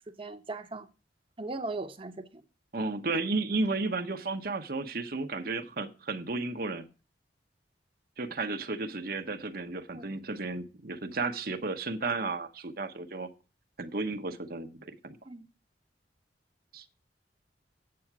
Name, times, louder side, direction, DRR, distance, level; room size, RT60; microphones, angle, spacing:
voice 1, 0.2-0.9 1.4-2.4 9.9-10.1 15.3-15.5, right 2 dB, 30° right, 0.9 m, -38 dB
voice 2, 2.7-6.9 8.2-13.3 13.8-15.2 16.7-16.8, right 3 dB, 55° right, 1.0 m, -33 dB
8.6 x 7.8 x 5.9 m
head